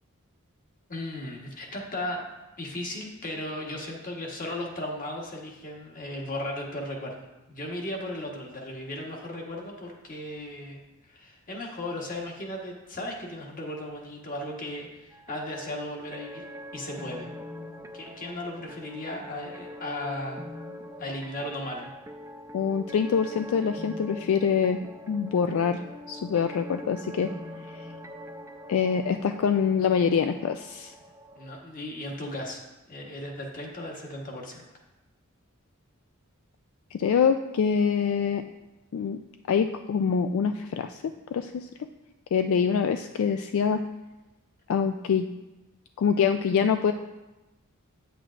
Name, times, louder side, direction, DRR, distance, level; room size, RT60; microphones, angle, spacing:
voice 1, 0.9-2.2 2.6-10.8 11.1-16.4 16.7-17.3 17.9-20.7 21.0-21.9 31.3-32.6 32.9-34.6, left 1 dB, 40° left, 0 dB, 1.2 m, -36 dB
sound 1, 15.1-31.6, left 1 dB, 15° right, 0.5 m, -43 dB
voice 2, 22.5-25.8 26.1-27.3 27.7-27.9 28.7-30.9 36.9-38.4 38.9-39.2 39.5-41.7 42.3-43.8 44.7-45.3 46.0-46.9, left 6 dB, 70° left, 8 dB, 0.3 m, -25 dB
8.9 x 8.0 x 2.5 m, 1.0 s
head